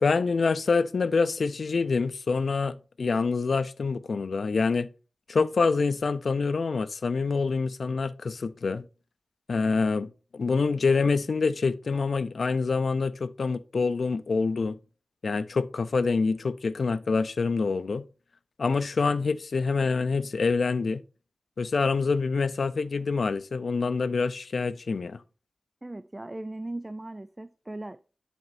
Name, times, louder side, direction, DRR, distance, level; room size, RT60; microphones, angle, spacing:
voice 1, 0.0-4.9 5.3-8.9 9.5-14.8 15.2-18.0 18.6-21.0 21.6-25.2, left 4 dB, 75° left, 0.4 m, -26 dB
voice 2, 25.8-28.2, right 2 dB, 25° right, 0.3 m, -38 dB
10.5 x 4.2 x 2.6 m
wide cardioid pair, 70°, 0 cm